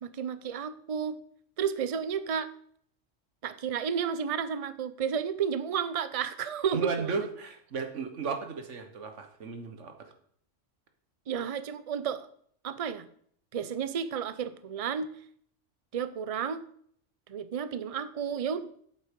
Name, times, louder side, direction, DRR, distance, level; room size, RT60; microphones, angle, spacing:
voice 1, 0.0-1.2 1.6-2.5 3.4-7.1 11.3-12.3 12.6-13.1 13.5-15.1 15.9-16.6 17.3-18.9, right 7 dB, 45° right, 13 dB, 0.5 m, -32 dB
voice 2, 6.7-10.1, right 4 dB, 75° right, 6 dB, 1.6 m, -35 dB
8.2 x 7.6 x 5.2 m, 0.62 s
omnidirectional pair, 1.3 m